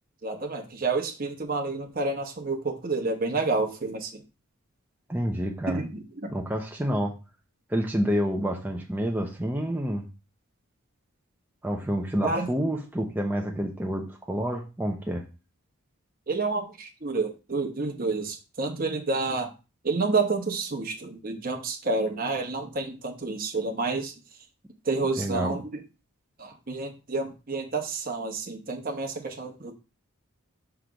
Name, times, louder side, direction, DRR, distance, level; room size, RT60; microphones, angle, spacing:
voice 1, 0.2-4.1 5.7-5.9 12.2-12.5 16.3-19.5 19.8-24.1 24.9-25.7 26.4-29.7, right 3 dB, 40° right, 3 dB, 1.0 m, -29 dB
voice 2, 5.1-5.8 6.3-7.1 7.7-10.0 11.6-15.2 25.2-25.6, equal, 10° right, 0 dB, 0.6 m, -28 dB
6.0 x 3.3 x 5.0 m, 0.30 s
head